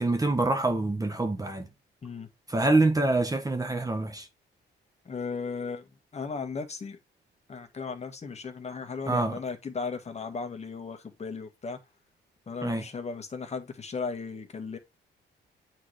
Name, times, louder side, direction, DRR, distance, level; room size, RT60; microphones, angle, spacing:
voice 1, 0.0-1.7 2.5-4.3 9.1-9.4 12.6-12.8, right 2 dB, 15° right, 1.2 m, -26 dB
voice 2, 5.0-5.8 6.1-7.0 7.5-11.8 12.5-14.8, left 5 dB, 35° left, 1.6 m, -36 dB
9.1 x 3.9 x 3.3 m
cardioid pair, 90°, 20 cm